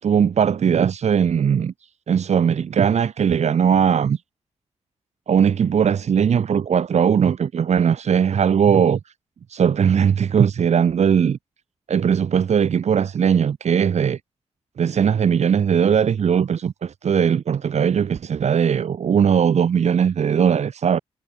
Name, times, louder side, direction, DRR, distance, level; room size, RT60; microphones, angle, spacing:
voice 1, 0.0-1.7 2.1-4.2 5.3-9.0 9.5-11.4 11.9-14.2 14.8-21.0, right 7 dB, 75° right, 3.4 m, -19 dB
cardioid pair, 80°, 11 cm